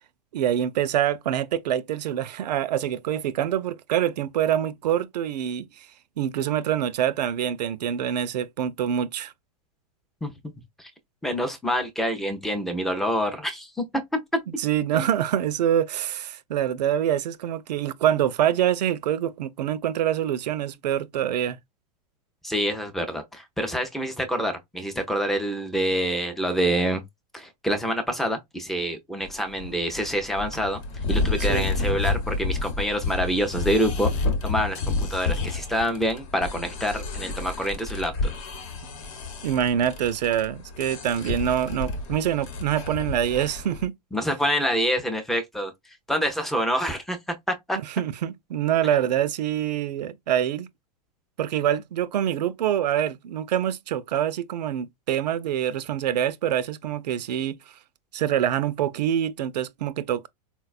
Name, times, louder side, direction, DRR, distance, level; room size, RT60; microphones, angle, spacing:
voice 1, 0.3-5.9 6.2-9.3 14.6-21.6 31.5-31.7 39.4-43.9 47.8-50.7 51.4-57.6 58.1-60.3, right 10 dB, 85° right, 0.5 m, -25 dB
voice 2, 10.2-10.5 10.8-10.9 11.2-14.4 14.9-15.1 22.4-27.0 27.3-30.8 31.1-38.3 44.1-45.7 46.1-47.8, equal, ahead, 0.4 m, -27 dB
sound 1, 29.2-43.9, left 3 dB, 55° left, 0.9 m, -30 dB
4.0 x 2.2 x 2.4 m
hypercardioid pair, 140°, 21 cm